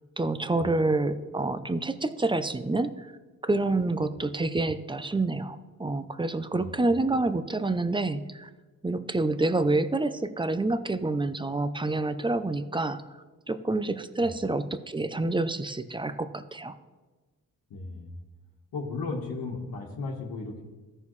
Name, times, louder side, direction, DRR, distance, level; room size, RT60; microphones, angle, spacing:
voice 1, 0.2-3.1 3.4-8.5 8.8-13.0 13.5-16.8, right 2 dB, 15° right, 12 dB, 0.5 m, -28 dB
voice 2, 17.7-18.2 18.7-20.6, left 3 dB, 80° left, -4 dB, 1.4 m, -35 dB
14.0 x 5.5 x 3.2 m, 1.3 s
cardioid pair, 65°, 34 cm